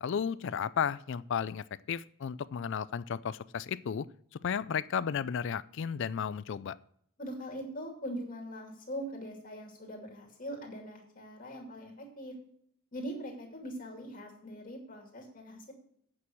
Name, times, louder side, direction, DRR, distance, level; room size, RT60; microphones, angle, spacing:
voice 1, 0.0-4.1 4.4-6.8, left 7 dB, 60° left, 16 dB, 0.4 m, -33 dB
voice 2, 7.2-12.3 12.9-15.7, equal, 40° left, -1 dB, 2.6 m, -42 dB
8.6 x 6.2 x 7.7 m, 0.66 s
head